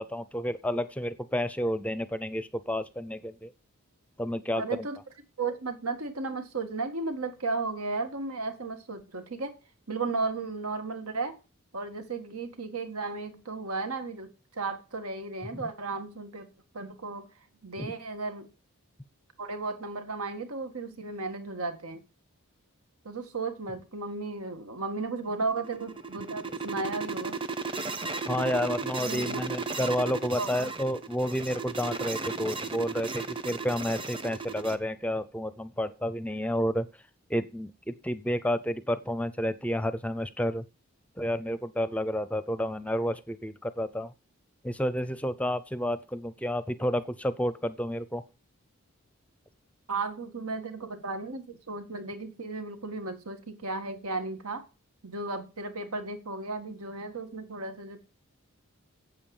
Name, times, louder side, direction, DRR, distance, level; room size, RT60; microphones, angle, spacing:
voice 1, 0.0-3.5 4.2-4.9 15.5-15.6 17.8-17.9 28.3-36.9 37.3-40.6 41.2-44.1 44.6-48.2, equal, 5° left, 14 dB, 0.5 m, -30 dB
voice 2, 4.5-5.0 5.4-9.5 9.9-11.4 11.7-16.5 16.7-17.3 17.6-18.5 19.4-22.0 23.0-27.4 29.0-29.4 30.4-30.7 49.9-54.6 55.0-58.0, right 3 dB, 90° right, 7 dB, 1.9 m, -34 dB
sound 1, 25.3-34.8, right 4 dB, 25° right, 0.8 m, -35 dB
8.7 x 7.9 x 7.1 m, 0.32 s
head